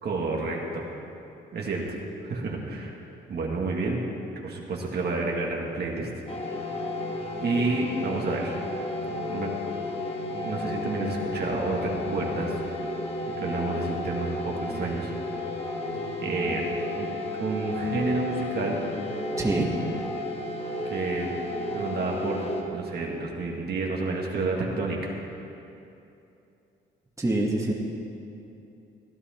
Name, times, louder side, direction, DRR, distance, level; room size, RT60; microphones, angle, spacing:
voice 1, 0.0-0.9 1.5-3.0 3.3-4.0 4.4-6.1 7.4-8.6 9.2-9.5 10.4-12.5 13.4-15.1 16.2-17.1 17.4-18.8 20.9-21.3 21.7-25.2, right 3 dB, 55° right, -1 dB, 2.1 m, -30 dB
sound 1, 6.3-22.6, left 1 dB, 30° left, 2.0 m, -32 dB
voice 2, 19.4-19.7 27.2-27.7, right 2 dB, 15° right, -3 dB, 1.9 m, -25 dB
16.0 x 11.0 x 4.5 m, 2.7 s
cardioid pair, 90°, 20 cm